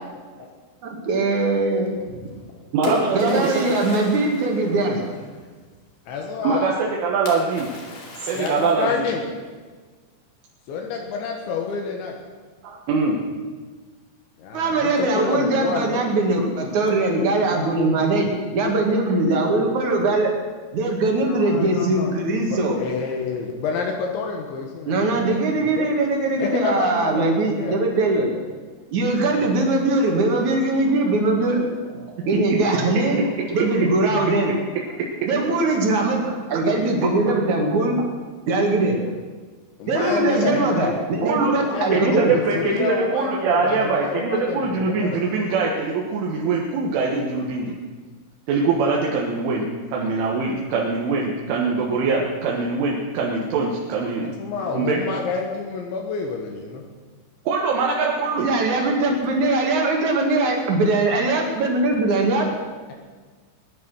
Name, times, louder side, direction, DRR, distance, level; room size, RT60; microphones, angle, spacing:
voice 1, 0.8-2.2 3.1-5.0 14.5-20.3 20.7-22.8 24.9-28.3 28.9-33.2 33.5-34.5 35.2-38.0 38.5-39.0 39.9-42.3 58.4-62.5, right 2 dB, 50° right, 1 dB, 2.8 m, -21 dB
Splash splatter, 2.3-5.5 7.3-9.2, left 2 dB, 50° left, 3.5 m, -34 dB
voice 2, 2.7-3.6 6.4-7.7 8.2-9.1 12.6-13.2 36.5-36.6 41.2-41.5 41.9-47.7 48.5-54.3 54.7-55.0 57.5-58.5, right 4 dB, 85° right, -2 dB, 4.0 m, -23 dB
voice 3, 6.1-6.7 8.3-9.2 10.7-12.2 14.4-16.1 21.2-22.2 22.5-25.3 25.6-25.9 26.4-27.8 29.3-29.6 39.8-41.0 41.6-45.2 54.2-56.8, left 5 dB, 75° left, 2 dB, 3.7 m, -28 dB
20.5 x 10.5 x 6.3 m, 1.4 s
omnidirectional pair, 5.4 m